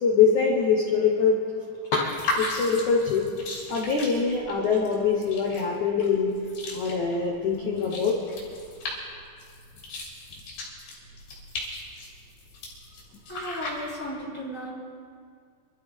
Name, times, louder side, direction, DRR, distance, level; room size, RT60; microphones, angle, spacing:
voice 1, 0.0-1.4 1.9-3.3 3.7-6.3 6.7-8.1, left 5 dB, 75° left, -1 dB, 1.7 m, -23 dB
sound 1, 2.0-14.1, left 2 dB, 55° left, 5.0 m, -37 dB
voice 2, 13.3-14.7, equal, 20° left, -8 dB, 3.3 m, -35 dB
26.5 x 13.0 x 3.7 m, 2.2 s
omnidirectional pair, 5.4 m